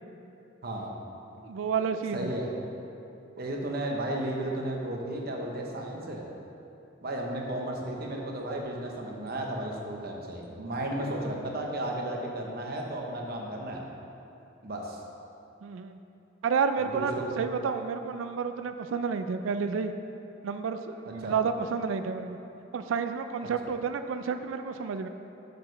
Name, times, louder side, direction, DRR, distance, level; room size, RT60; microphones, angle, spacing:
voice 1, 0.6-0.9 2.1-2.5 3.4-6.3 7.0-13.8 14.6-15.0 16.9-17.4 21.2-21.3, right 1 dB, 55° right, 0 dB, 0.9 m, -34 dB
voice 2, 1.4-2.3 15.6-16.0 16.4-19.9 20.4-22.4 22.7-25.1, right 5 dB, 85° right, 8 dB, 0.4 m, -30 dB
8.0 x 6.8 x 3.3 m, 2.8 s
head